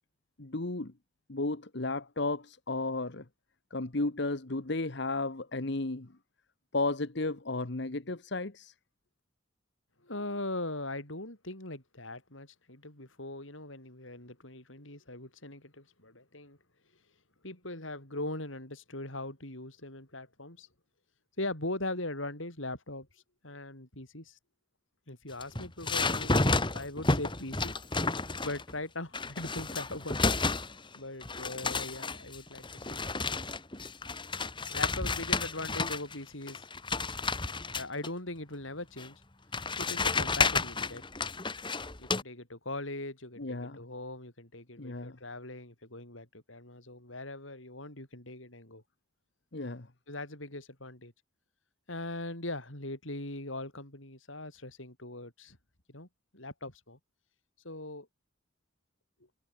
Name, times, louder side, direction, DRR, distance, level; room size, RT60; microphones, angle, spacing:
voice 1, 0.4-0.9 1.3-3.2 3.7-6.1 6.7-8.7 43.4-43.8 44.8-45.2 49.5-49.9, left 2 dB, 60° left, 1.4 m, -33 dB
voice 2, 10.0-16.6 17.4-20.7 21.4-24.4 25.1-26.5 26.7-27.7 28.4-30.2 30.9-33.0 34.7-36.7 37.7-39.2 39.8-41.0 42.0-48.8 50.1-51.1 51.9-55.6 55.9-56.1 56.3-57.0 57.6-58.1, left 2 dB, 75° left, 8.0 m, -40 dB
sound 1, 25.3-28.7 29.1-31.0 31.2-36.2 36.5-38.1 39.0-39.1 39.5-42.2, left 3 dB, 25° left, 2.5 m, -31 dB
head